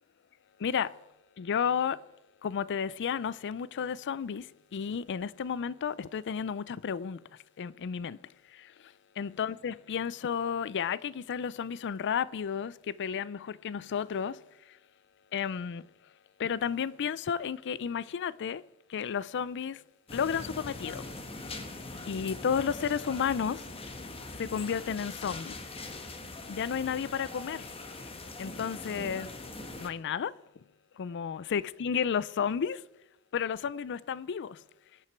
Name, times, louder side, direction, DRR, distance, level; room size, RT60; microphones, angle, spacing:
voice 1, 0.6-1.0 1.4-2.0 2.4-7.2 7.6-14.8 15.3-15.9 16.4-18.6 18.9-19.8 20.1-21.1 22.1-23.7 24.4-25.6 26.5-27.7 28.4-29.3 29.8-30.3 31.0-32.8 33.3-34.6, left 7 dB, 55° left, 0.4 m, -32 dB
sound 1, 20.1-29.9, left 2 dB, 25° left, 1.2 m, -42 dB
23.5 x 8.9 x 4.5 m
head